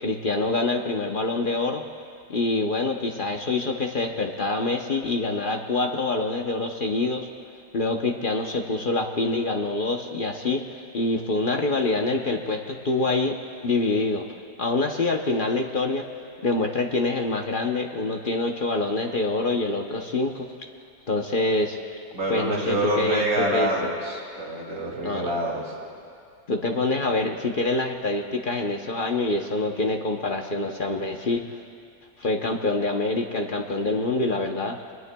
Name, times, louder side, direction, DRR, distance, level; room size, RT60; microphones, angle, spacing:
voice 1, 0.0-1.8 2.3-7.3 7.7-14.3 14.6-16.1 16.4-20.5 21.1-21.8 22.3-23.7 25.0-25.3 26.5-31.6 32.2-34.8, left 2 dB, 45° left, 3 dB, 0.7 m, -26 dB
voice 2, 22.1-25.6, right 1 dB, 55° right, -3 dB, 3.1 m, -26 dB
24.5 x 20.5 x 2.3 m, 2.3 s
omnidirectional pair, 1.9 m